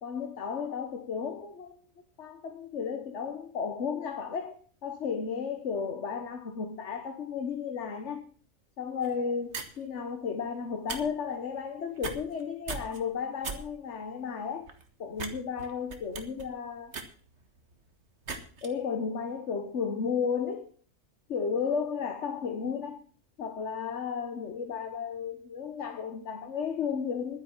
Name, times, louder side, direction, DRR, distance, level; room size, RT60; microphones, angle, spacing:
voice 1, 0.0-1.8 2.2-8.2 8.8-14.7 15.0-17.0 18.6-20.7 21.3-23.0 23.4-27.4, left 6 dB, 60° left, 1.5 m, -33 dB
sound 1, 9.0-9.2 9.5-9.8 10.7-11.0 11.3-11.5 12.0-12.4 12.7-13.0 13.4-13.6 14.0-14.1 14.7-14.8 15.1-15.3 15.6-17.7 18.3-18.7, right 4 dB, 60° right, 1.8 m, -38 dB
11.5 x 9.9 x 7.2 m
omnidirectional pair, 1.3 m